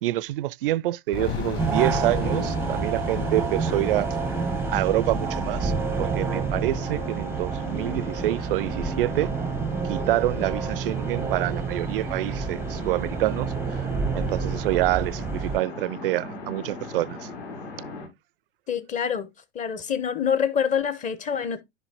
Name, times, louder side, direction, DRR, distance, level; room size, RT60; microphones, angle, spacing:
voice 1, 0.0-4.1 4.7-5.7 6.0-9.3 9.8-13.8 14.1-17.2, right 16 dB, 60° right, 0.4 m, -27 dB
sound 1, 1.1-12.0, left 8 dB, 40° left, 3.1 m, -38 dB
sound 2, 1.6-15.6, right 5 dB, 5° right, 0.6 m, -29 dB
sound 3, 3.4-18.1, left 3 dB, 60° left, 6.2 m, -40 dB
voice 2, 18.7-19.3 19.5-21.6, left 7 dB, 25° left, 0.9 m, -26 dB
11.0 x 5.4 x 2.8 m
figure-of-eight pair, 100°, 32 cm